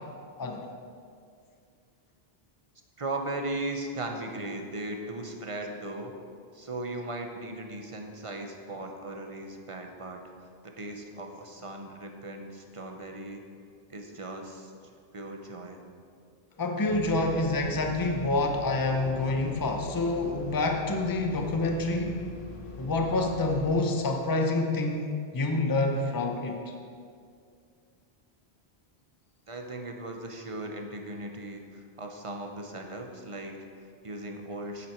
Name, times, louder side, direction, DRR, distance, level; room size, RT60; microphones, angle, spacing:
voice 1, 3.0-6.1 6.5-13.4 13.9-14.7 15.1-15.8 29.5-34.9, right 2 dB, 35° right, 3 dB, 0.9 m, -38 dB
voice 2, 16.6-22.2 22.8-26.6, left 2 dB, 20° left, 2 dB, 0.8 m, -27 dB
sound 1, 16.9-23.7, left 2 dB, 90° left, 1.5 m, -42 dB
9.3 x 8.5 x 4.5 m, 2.3 s
omnidirectional pair, 1.1 m